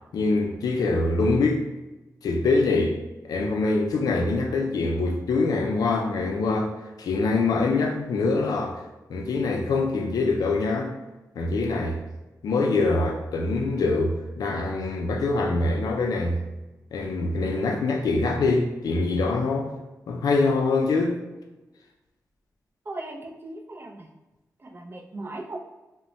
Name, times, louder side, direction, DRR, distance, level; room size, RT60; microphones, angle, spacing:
voice 1, 0.1-1.6 2.2-3.0 3.2-6.7 7.0-8.7 9.1-10.9 11.4-12.0 12.4-16.4 16.9-19.7 20.1-21.1, left 3 dB, 85° left, 3 dB, 0.4 m, -24 dB
voice 2, 22.9-24.1 24.6-25.6, right 2 dB, 35° right, 1 dB, 0.4 m, -37 dB
2.1 x 2.1 x 3.8 m, 1.1 s
wide cardioid pair, 105°, 6 cm